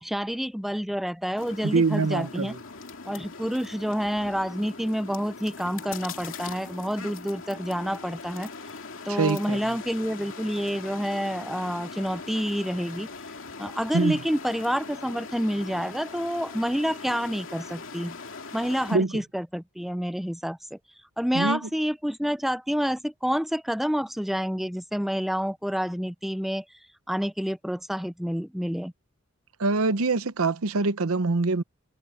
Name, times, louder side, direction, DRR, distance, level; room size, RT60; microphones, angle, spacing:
voice 1, 0.0-2.5 3.1-8.5 9.0-13.1 13.6-18.2 18.5-20.8 21.2-26.6 27.1-28.9, equal, ahead, 0.4 m, -28 dB
sound 1, 1.4-19.0, left 4 dB, 65° left, 2.6 m, -41 dB
voice 2, 1.6-2.6 9.1-9.6 13.9-14.2 18.9-19.1 21.3-21.6 29.6-31.6, right 3 dB, 75° right, 0.8 m, -24 dB
head